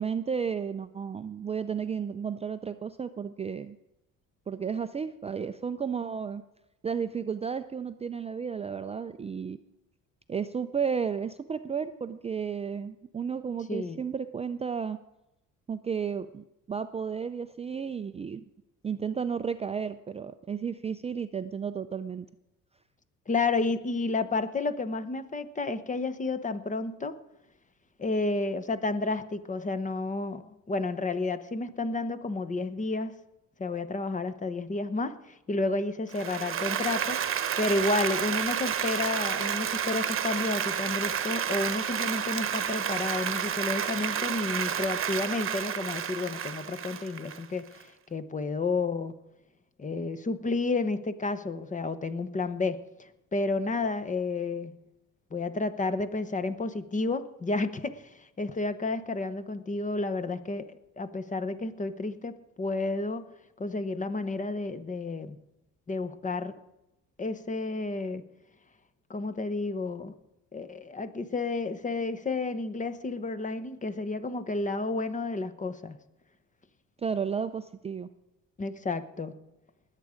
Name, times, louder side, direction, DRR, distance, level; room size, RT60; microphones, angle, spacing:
voice 1, 0.0-3.8 4.5-6.4 6.8-9.6 10.3-15.0 15.7-18.4 18.8-22.3 77.0-78.1, right 6 dB, 20° right, 10 dB, 0.4 m, -33 dB
voice 2, 13.7-14.0 23.3-27.2 28.0-33.2 33.6-37.2 37.6-49.1 49.8-52.8 53.3-54.8 55.3-60.7 61.0-63.2 63.6-65.4 65.9-66.5 67.2-68.2 69.1-70.1 70.5-76.0 78.6-79.3, left 3 dB, 25° left, 13 dB, 0.9 m, -31 dB
Applause, 36.1-47.8, right 8 dB, 40° right, 1.1 m, -30 dB
20.5 x 8.4 x 5.0 m, 0.92 s
cardioid pair, 105°, 33 cm